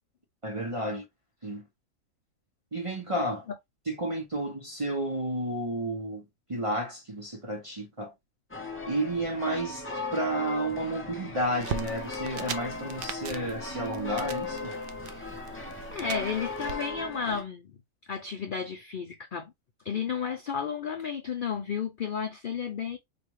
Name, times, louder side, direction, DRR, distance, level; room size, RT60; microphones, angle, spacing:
voice 1, 0.4-1.0 1.4-1.6 2.7-3.5 3.9-8.1 8.9-14.7, right 1 dB, 30° right, 0.7 m, -31 dB
sound 1, 8.5-17.4, left 3 dB, 15° left, 0.5 m, -37 dB
sound 2, 11.6-16.8, right 5 dB, 75° right, 0.5 m, -40 dB
voice 2, 15.9-17.7 18.1-19.5 19.8-23.0, left 6 dB, 70° left, 0.5 m, -32 dB
5.0 x 2.3 x 3.0 m
omnidirectional pair, 1.6 m